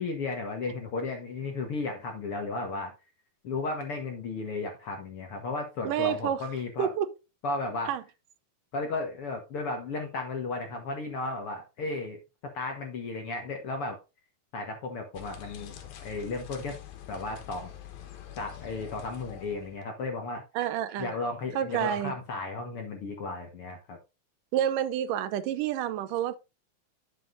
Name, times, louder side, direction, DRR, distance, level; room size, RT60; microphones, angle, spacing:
voice 1, 0.0-2.9 3.4-6.9 7.4-7.9 8.7-12.2 12.5-14.0 14.5-16.8 17.1-17.7 18.4-20.4 21.0-24.0, left 3 dB, 55° left, 1.6 m, -34 dB
voice 2, 5.8-6.4 6.8-7.1 7.9-8.0 20.6-21.1 21.6-22.2 24.5-26.4, right 10 dB, 75° right, 2.1 m, -28 dB
sound 1, 15.1-19.8, left 11 dB, 85° left, 3.1 m, -45 dB
10.0 x 7.3 x 2.6 m
omnidirectional pair, 4.1 m